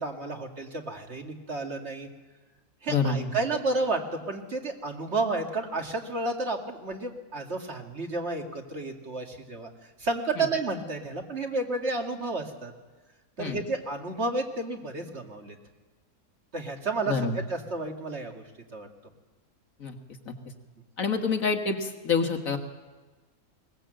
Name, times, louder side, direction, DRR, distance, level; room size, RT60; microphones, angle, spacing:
voice 1, 0.0-2.1 2.8-4.0 4.3-9.7 10.0-12.7 13.4-15.6 16.5-18.4 18.7-18.9, right 3 dB, 45° right, 3 dB, 2.3 m, -31 dB
voice 2, 2.9-3.3 10.4-10.5 13.4-13.6 17.1-17.4 19.8-20.0 20.3-20.4 21.0-22.6, left 5 dB, 60° left, 5 dB, 2.0 m, -27 dB
21.5 x 19.0 x 7.8 m, 1.3 s
omnidirectional pair, 1.6 m